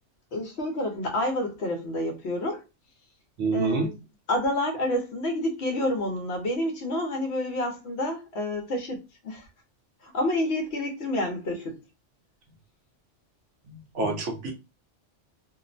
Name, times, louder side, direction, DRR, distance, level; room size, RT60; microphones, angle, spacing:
voice 1, 0.3-2.6 3.5-4.0 4.3-9.5 10.0-11.8, left 1 dB, 65° left, 1.0 m, -29 dB
voice 2, 3.4-3.9 13.7-14.5, right 3 dB, 75° right, 1.1 m, -27 dB
2.9 x 2.0 x 2.5 m
omnidirectional pair, 1.2 m